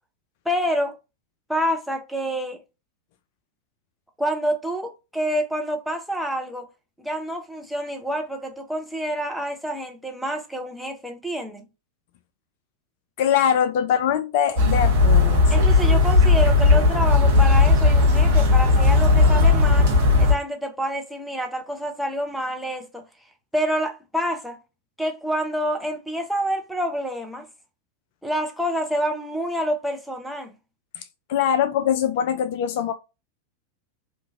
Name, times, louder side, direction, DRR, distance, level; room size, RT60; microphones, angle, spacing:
voice 1, 0.5-0.9 1.5-2.6 4.2-6.7 7.0-11.6 15.5-19.9 20.2-23.0 23.5-24.6 25.0-27.5 28.2-30.5, equal, ahead, 0.6 m, -27 dB
voice 2, 13.2-15.5 31.0-31.1 31.3-32.9, left 9 dB, 50° left, 0.3 m, -22 dB
sound 1, 14.6-20.3, left 3 dB, 50° right, 0.9 m, -16 dB
3.0 x 2.4 x 2.4 m
figure-of-eight pair, 90°, 0 cm